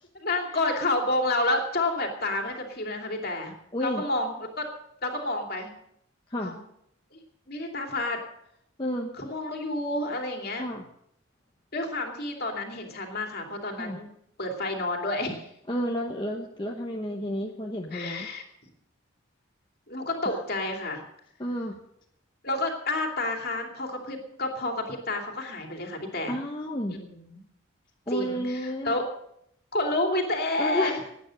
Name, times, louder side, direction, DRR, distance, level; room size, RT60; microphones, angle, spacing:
voice 1, 0.2-3.5 3.8-4.7 5.0-5.7 6.4-6.6 7.1-7.2 7.5-8.2 9.2-10.6 11.7-14.1 14.4-15.5 17.9-18.4 19.9-21.0 22.4-26.4 26.9-27.4 28.1-29.0 29.7-31.0, left 2 dB, 45° left, 2 dB, 2.7 m, -29 dB
voice 2, 3.7-4.0 6.3-6.5 8.8-9.1 10.6-10.8 13.8-14.0 15.7-18.3 20.2-20.3 21.4-21.8 26.3-27.0 28.1-28.9 30.6-31.0, equal, 20° left, 0 dB, 1.1 m, -31 dB
18.0 x 9.4 x 6.4 m, 0.75 s
head